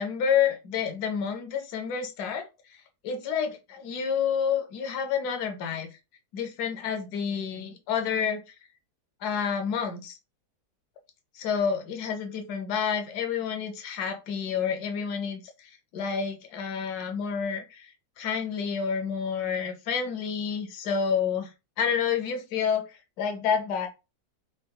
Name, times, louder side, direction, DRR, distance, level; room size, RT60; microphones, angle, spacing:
voice 1, 0.0-2.5 3.0-5.9 6.3-8.4 9.2-10.2 11.4-21.5 21.8-23.9, left 7 dB, 85° left, 1.2 m, -29 dB
3.7 x 2.2 x 2.2 m
omnidirectional pair, 1.6 m